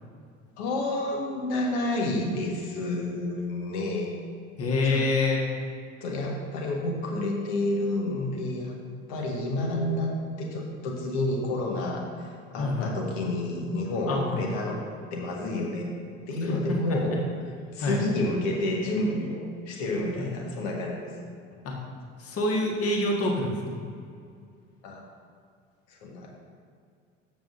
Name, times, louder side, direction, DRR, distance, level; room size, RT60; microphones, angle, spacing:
voice 1, 0.6-4.1 4.8-5.0 6.0-8.8 9.1-14.8 15.1-15.9 16.3-17.2 17.7-21.1 24.8-25.0 25.9-26.4, left 2 dB, 60° left, 0 dB, 1.6 m, -29 dB
voice 2, 4.6-5.4 12.6-12.9 14.1-14.5 16.4-17.0 17.8-18.0 20.2-20.3 21.6-21.8 22.2-23.8, left 2 dB, 40° left, -1 dB, 1.7 m, -27 dB
12.5 x 7.6 x 2.7 m, 2.3 s
figure-of-eight pair, 60°, 38 cm